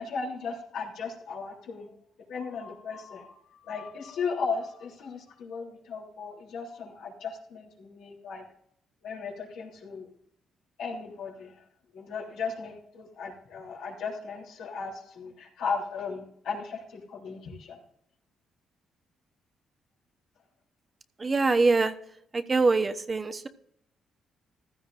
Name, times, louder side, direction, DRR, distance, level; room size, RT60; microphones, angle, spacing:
voice 1, 0.0-1.9 2.3-3.3 3.6-8.4 9.0-10.1 10.8-11.6 11.9-17.8, left 5 dB, 80° left, -1 dB, 3.3 m, -36 dB
voice 2, 21.2-21.9 22.3-23.5, right 3 dB, 30° right, 7 dB, 1.0 m, -24 dB
15.5 x 13.0 x 2.6 m, 0.71 s
cardioid pair, 90°, 0 cm